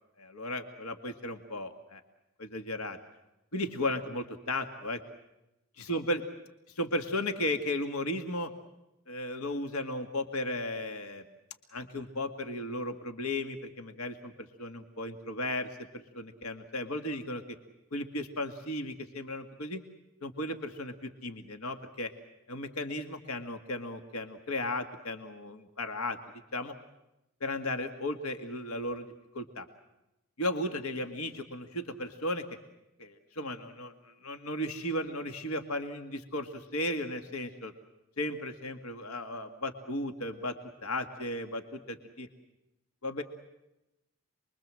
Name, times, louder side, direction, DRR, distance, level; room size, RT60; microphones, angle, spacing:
voice 1, 0.2-2.0 2.4-3.0 3.5-5.0 5.8-6.2 6.8-8.5 9.1-11.2 11.7-17.6 17.9-19.8 20.2-22.1 22.5-26.2 26.5-26.7 27.4-29.1 29.3-29.7 30.4-32.4 33.0-37.7 38.2-42.3 43.0-43.2, left 1 dB, 85° left, 7 dB, 2.0 m, -35 dB
28.0 x 22.5 x 7.6 m, 0.92 s
head